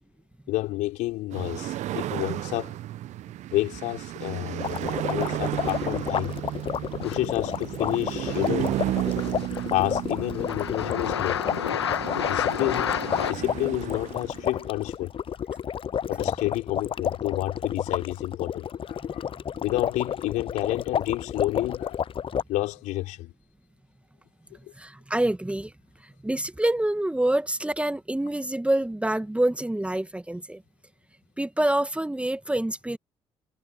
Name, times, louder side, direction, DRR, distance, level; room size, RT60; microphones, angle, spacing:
voice 1, 0.5-2.7 3.5-6.3 7.0-8.7 9.7-11.4 12.3-13.0 13.2-15.1 16.1-19.3 19.6-22.0 22.5-23.3, left 18 dB, 70° left, 5.1 m, -30 dB
sound 1, 1.3-14.7, right 14 dB, 60° right, 1.2 m, -33 dB
sound 2, 4.6-22.4, left 8 dB, 40° left, 0.7 m, -31 dB
sound 3, 5.6-6.1 7.0-7.3 8.2-8.4 8.7-9.8 10.2-13.3, left 9 dB, 90° left, 1.9 m, -31 dB
voice 2, 24.8-25.7 26.2-30.6 31.4-33.0, right 1 dB, 10° right, 1.6 m, -26 dB
hypercardioid pair, 50°, 13 cm